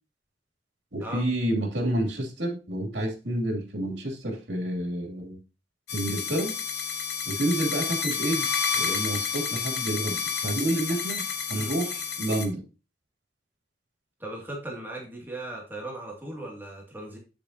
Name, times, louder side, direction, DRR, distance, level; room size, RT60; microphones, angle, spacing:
voice 1, 0.9-5.4 5.9-6.5 7.3-12.7, right 1 dB, 80° right, 2 dB, 2.8 m, -29 dB
sound 1, 5.9-12.4, left 6 dB, 70° left, 1.4 m, -30 dB
voice 2, 14.2-17.2, right 1 dB, 10° right, -1 dB, 2.3 m, -38 dB
8.8 x 7.0 x 2.8 m, 0.31 s
head